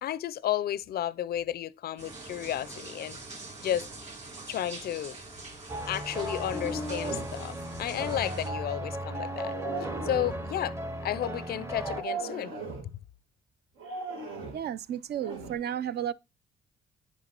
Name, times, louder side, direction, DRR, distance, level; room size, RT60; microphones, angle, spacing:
voice 1, 0.0-3.2 3.6-3.9 4.5-5.2 5.9-10.8 11.0-12.5, left 11 dB, 50° left, 0.4 m, -32 dB
sound 1, 2.0-8.5, right 3 dB, 35° right, 2.7 m, -45 dB
sound 2, 5.7-12.0, right 1 dB, 15° right, 0.6 m, -36 dB
sound 3, 6.1-7.4 9.2-10.5 11.7-12.9 13.8-14.7 15.2-15.5, right 3 dB, 85° right, 1.7 m, -37 dB
voice 2, 14.5-16.1, right 10 dB, 55° right, 0.4 m, -33 dB
9.7 x 4.5 x 2.8 m
cardioid pair, 90°, 20 cm